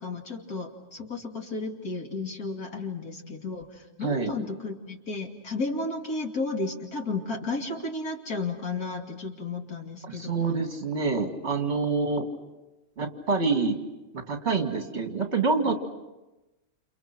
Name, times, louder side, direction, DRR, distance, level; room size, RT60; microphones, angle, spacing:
voice 1, 0.0-10.3, left 3 dB, 75° left, 2 dB, 3.0 m, -33 dB
voice 2, 4.0-4.3 10.0-12.3 13.0-13.8 14.3-15.7, right 4 dB, 45° right, 4 dB, 2.6 m, -26 dB
29.0 x 29.0 x 6.1 m, 1.1 s
omnidirectional pair, 1.6 m